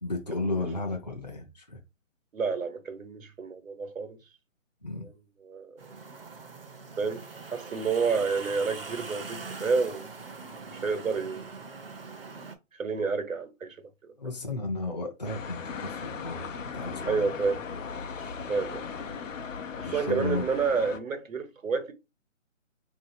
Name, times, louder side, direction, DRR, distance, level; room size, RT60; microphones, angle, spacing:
voice 1, 0.0-1.8 4.8-5.1 14.2-16.5 16.7-17.3 18.2-18.6 19.8-20.4, left 2 dB, 35° left, 0.5 m, -34 dB
voice 2, 2.3-4.2 5.0-5.1 5.4-5.8 7.0-7.2 7.5-10.1 10.7-11.5 12.7-14.3 17.1-17.6 18.5-18.9 19.8-21.9, right 5 dB, 85° right, 1.1 m, -30 dB
sound 1, 5.8-12.6, right 4 dB, 45° right, 0.6 m, -42 dB
sound 2, 15.2-21.0, left 6 dB, 75° left, 0.6 m, -38 dB
3.8 x 2.7 x 2.6 m
hypercardioid pair, 180°, 39 cm